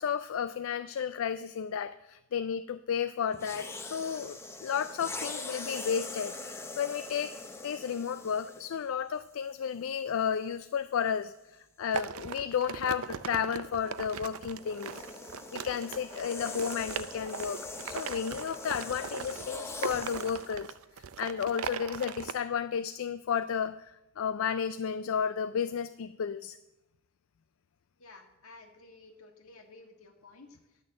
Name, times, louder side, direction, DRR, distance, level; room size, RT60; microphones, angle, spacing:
voice 1, 0.0-7.4 7.6-15.0 15.5-17.6 17.9-26.6, left 7 dB, 70° left, 12 dB, 0.4 m, -33 dB
sound 1, 3.3-8.9 9.7-9.9 13.8-20.5, left 3 dB, 10° left, 0.7 m, -43 dB
sound 2, 11.9-22.3, right 7 dB, 80° right, 0.5 m, -40 dB
voice 2, 28.0-30.8, left 3 dB, 90° left, 4 dB, 1.8 m, -53 dB
11.0 x 6.4 x 7.4 m, 0.97 s
head